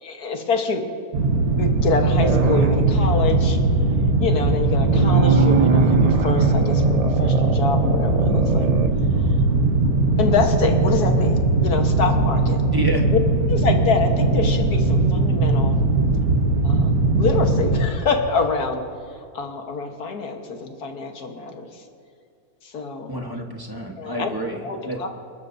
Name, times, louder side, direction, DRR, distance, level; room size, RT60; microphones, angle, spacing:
voice 1, 0.0-0.8 1.6-3.6 4.2-8.7 10.2-12.6 13.5-15.8 16.6-18.8 19.3-21.8 22.6-23.1 24.0-24.3 24.6-25.1, left 4 dB, 85° left, 4 dB, 1.9 m, -26 dB
sound 1, 1.1-17.8, right 2 dB, 75° right, 1.5 m, -19 dB
sound 2, 2.2-3.3 4.5-8.9, right 4 dB, 55° right, 0.4 m, -23 dB
voice 2, 12.7-13.1 23.1-25.0, right 1 dB, 15° right, 2 dB, 1.1 m, -28 dB
28.5 x 12.5 x 2.7 m, 2.4 s
omnidirectional pair, 1.6 m